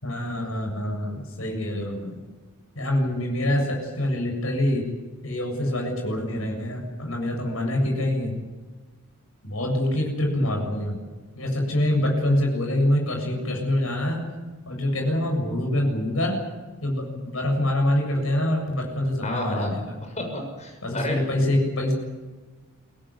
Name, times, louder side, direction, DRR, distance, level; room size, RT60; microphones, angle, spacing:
voice 1, 0.0-2.2 2.8-4.8 5.2-8.3 9.4-11.0 11.4-14.2 14.7-16.4 16.8-20.0 20.8-21.9, left 1 dB, 70° left, 2 dB, 7.4 m, -25 dB
voice 2, 19.2-21.3, left 1 dB, 30° left, 3 dB, 6.9 m, -31 dB
25.0 x 17.5 x 9.8 m, 1.3 s
head